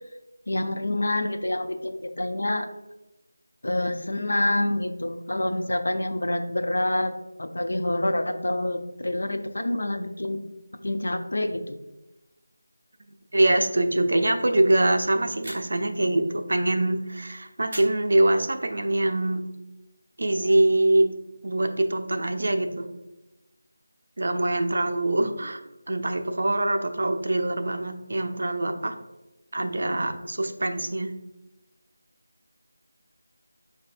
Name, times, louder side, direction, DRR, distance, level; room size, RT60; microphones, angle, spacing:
voice 1, 0.5-2.7 3.6-7.1 7.4-10.4 10.8-11.8, left 1 dB, 65° left, 6 dB, 0.5 m, -27 dB
voice 2, 13.3-19.4 20.2-21.1 21.4-22.9 24.2-25.6 25.9-28.9 29.5-31.1, right 1 dB, 45° right, 6 dB, 0.4 m, -24 dB
sound 1, 15.4-16.0 17.7-18.7, right 1 dB, 25° right, 1.1 m, -42 dB
6.4 x 2.7 x 2.5 m, 0.98 s
figure-of-eight pair, 180°, 0 cm